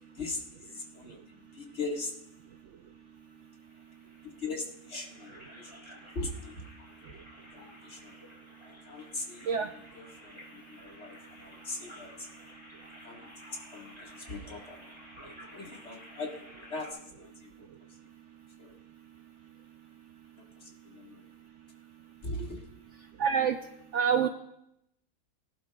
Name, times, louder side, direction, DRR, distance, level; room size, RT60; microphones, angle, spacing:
voice 1, 0.1-2.1 4.2-6.7 7.5-8.2 8.6-12.3 13.0-13.3 13.7-14.9 15.2-17.7 18.6-18.8 20.4-21.3 22.2-22.7, left 2 dB, 45° left, -1 dB, 2.0 m, -41 dB
sound 1, 3.6-16.9, left 1 dB, 15° left, 4.0 m, -53 dB
voice 2, 23.2-23.6 23.9-24.3, right 7 dB, 65° right, 7 dB, 0.7 m, -25 dB
21.5 x 11.5 x 2.3 m, 0.79 s
omnidirectional pair, 1.6 m